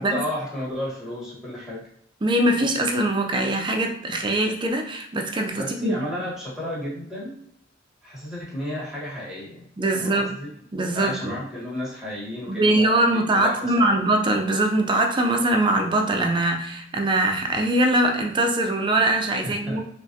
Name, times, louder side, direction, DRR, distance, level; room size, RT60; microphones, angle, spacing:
voice 1, 0.0-1.8 5.5-7.4 8.0-9.7 10.0-10.5 10.9-14.0 19.4-19.8, left 1 dB, 5° right, -8 dB, 1.3 m, -32 dB
voice 2, 2.2-6.0 9.8-10.3 10.7-11.4 12.5-19.8, right 1 dB, 25° right, 3 dB, 0.4 m, -22 dB
3.4 x 2.4 x 2.7 m, 0.69 s
head